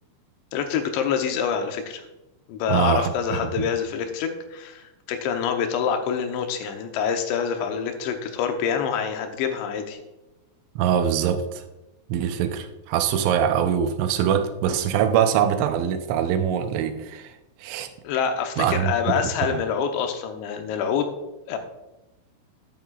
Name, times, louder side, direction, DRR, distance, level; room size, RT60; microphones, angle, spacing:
voice 1, 0.5-2.0 2.5-10.0 18.0-21.1 21.5-21.6, left 7 dB, 80° left, 5 dB, 3.1 m, -26 dB
voice 2, 2.7-3.6 10.8-11.6 12.1-17.3 17.6-17.9 18.6-19.3, right 9 dB, 90° right, 8 dB, 3.2 m, -23 dB
12.5 x 10.0 x 2.4 m, 1.0 s
omnidirectional pair, 5.3 m